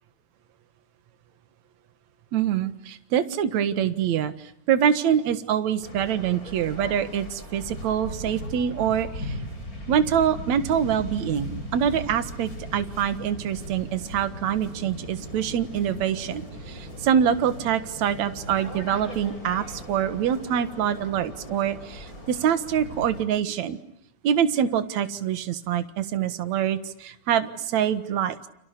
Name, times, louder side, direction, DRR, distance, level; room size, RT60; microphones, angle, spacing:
voice 1, 2.3-9.4 9.9-23.8 24.2-28.4, right 9 dB, 70° right, 11 dB, 2.8 m, -25 dB
Waves surf, 5.8-23.2, equal, 25° left, 6.9 m, -38 dB
30.0 x 29.5 x 6.7 m, 0.73 s
omnidirectional pair, 3.3 m